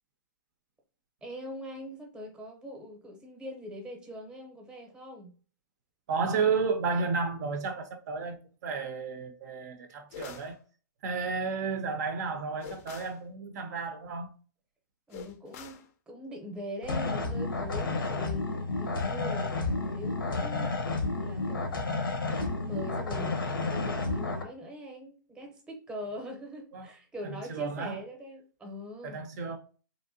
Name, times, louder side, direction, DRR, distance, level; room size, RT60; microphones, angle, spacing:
voice 1, 1.2-5.3 15.1-18.5 18.8-29.2, equal, 10° right, 0.7 m, -42 dB
voice 2, 6.1-8.4 8.6-10.6 11.0-14.3 26.7-26.9 27.2-28.0 29.0-29.6, right 4 dB, 55° right, 0.4 m, -32 dB
sound 1, 10.1-10.6 12.6-13.2 15.1-15.9, left 8 dB, 40° left, 0.4 m, -45 dB
sound 2, 16.8-24.4, left 3 dB, 90° left, 0.7 m, -31 dB
3.0 x 2.6 x 2.5 m
hypercardioid pair, 135°, 11 cm